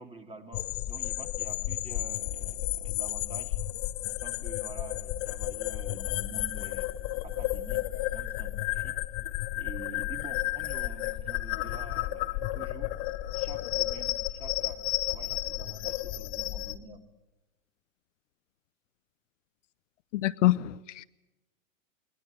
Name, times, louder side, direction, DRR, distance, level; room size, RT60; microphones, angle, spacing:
voice 1, 0.0-3.6 4.1-6.9 7.2-7.8 8.1-9.0 9.6-12.9 13.3-14.8 15.1-17.0, right 2 dB, 15° right, 2.8 m, -47 dB
sound 1, 0.5-16.8, left 16 dB, 40° left, 1.0 m, -32 dB
voice 2, 20.1-21.0, left 16 dB, 60° left, 0.7 m, -26 dB
20.5 x 19.5 x 8.9 m
hypercardioid pair, 115°, 41 cm